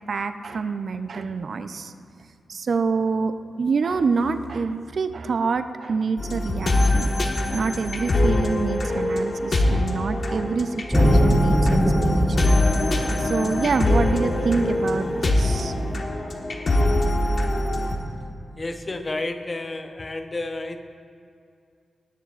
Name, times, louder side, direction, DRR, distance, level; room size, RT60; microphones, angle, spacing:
voice 1, 0.0-1.9 2.5-7.1 7.5-12.6 13.0-15.7, right 4 dB, 65° right, 9 dB, 0.5 m, -26 dB
sound 1, 6.2-18.0, left 1 dB, 50° left, 1.3 m, -23 dB
sound 2, 10.9-16.0, right 1 dB, 5° right, 2.7 m, -25 dB
voice 2, 18.6-20.8, left 2 dB, 30° left, 7 dB, 0.7 m, -31 dB
19.0 x 14.0 x 2.5 m, 2.4 s
wide cardioid pair, 100°, 0 cm